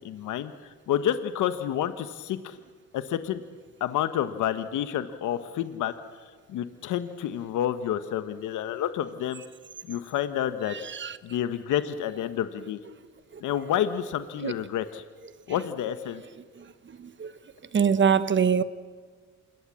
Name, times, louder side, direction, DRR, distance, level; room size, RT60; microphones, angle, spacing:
voice 1, 0.0-2.6 2.9-3.4 3.8-5.9 6.5-9.4 9.9-10.8 11.2-12.8 13.4-15.0 15.5-16.2, left 10 dB, 80° left, 1.2 m, -29 dB
voice 2, 10.7-11.2 13.3-13.4 14.4-14.5 16.6-16.7 17.0-17.3 17.7-18.6, right 7 dB, 40° right, 1.2 m, -24 dB
27.0 x 20.5 x 7.6 m
cardioid pair, 90°, 30 cm